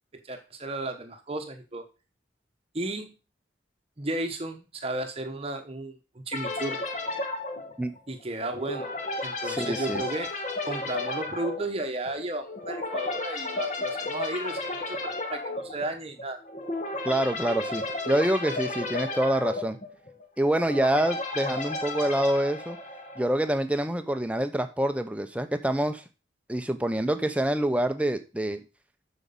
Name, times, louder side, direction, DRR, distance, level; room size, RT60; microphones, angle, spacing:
voice 1, 0.2-1.9 2.7-3.1 4.0-6.9 8.1-8.9 9.2-10.3 10.7-16.4, right 2 dB, 30° right, 6 dB, 1.0 m, -34 dB
sound 1, 6.3-23.5, left 2 dB, 40° left, 1.6 m, -33 dB
voice 2, 9.4-10.0 17.0-19.8 20.4-22.8 23.2-26.0 26.5-28.6, right 1 dB, 5° right, 8 dB, 0.7 m, -26 dB
8.4 x 6.2 x 5.3 m, 0.31 s
head